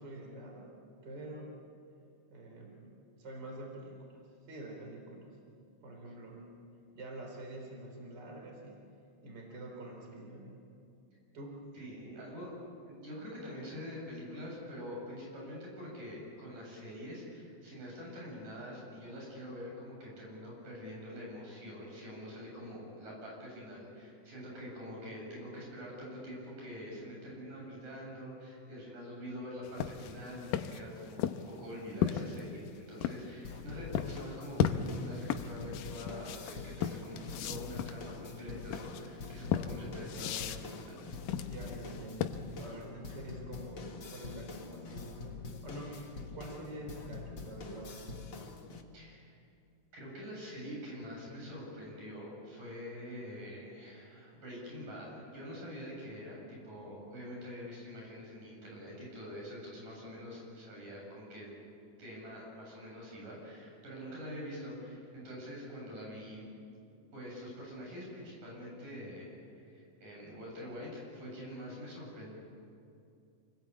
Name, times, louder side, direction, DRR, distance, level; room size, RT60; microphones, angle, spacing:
voice 1, 0.0-1.5 2.3-5.4 5.8-6.4 6.9-8.9 9.2-10.6 11.3-11.6 25.1-25.3 41.4-45.2 45.6-46.0 46.3-48.2, right 1 dB, 30° right, 1 dB, 4.3 m, -47 dB
voice 2, 11.7-12.5 12.9-41.0 45.8-46.0 48.9-49.4 49.9-61.5 62.0-66.5 67.1-72.3, equal, 90° right, -2 dB, 9.7 m, -45 dB
sound 1, 29.7-33.3 34.0-34.2 34.6-42.7, left 9 dB, 85° left, 2.5 m, -35 dB
sound 2, 33.4-48.8, left 4 dB, 40° left, 2.1 m, -45 dB
28.0 x 20.5 x 8.6 m, 2.5 s
omnidirectional pair, 3.7 m